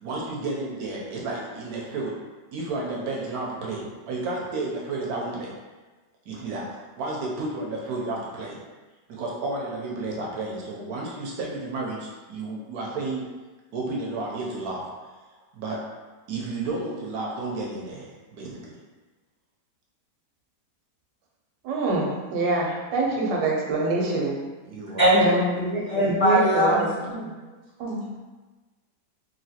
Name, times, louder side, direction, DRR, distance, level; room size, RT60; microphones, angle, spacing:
voice 1, 0.0-2.1 2.5-5.5 6.3-6.7 7.0-8.6 9.1-13.2 13.7-14.8 15.3-15.8 16.3-18.7 24.7-25.0, right 2 dB, 70° right, -3 dB, 0.9 m, -32 dB
voice 2, 21.6-24.4 25.2-25.8 26.2-27.3 27.8-28.0, right 2 dB, 90° right, -2 dB, 1.3 m, -25 dB
voice 3, 25.9-26.9, right 1 dB, 40° left, -11 dB, 0.6 m, -19 dB
3.0 x 2.7 x 2.7 m, 1.3 s
omnidirectional pair, 1.9 m